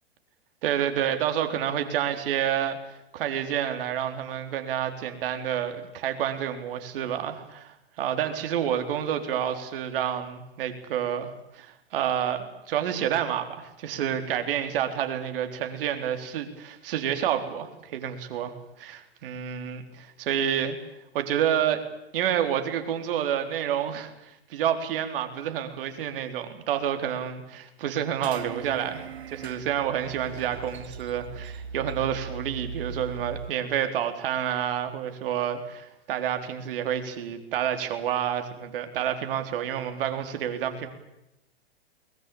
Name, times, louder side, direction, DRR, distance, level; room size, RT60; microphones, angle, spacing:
voice 1, 0.6-2.8 3.1-20.8 21.1-21.8 22.1-40.9, right 9 dB, 60° right, 7 dB, 3.7 m, -29 dB
sound 1, 28.2-33.5, right 5 dB, 85° right, 1.6 m, -39 dB
22.0 x 20.5 x 9.2 m, 0.87 s
hypercardioid pair, 115°, 31 cm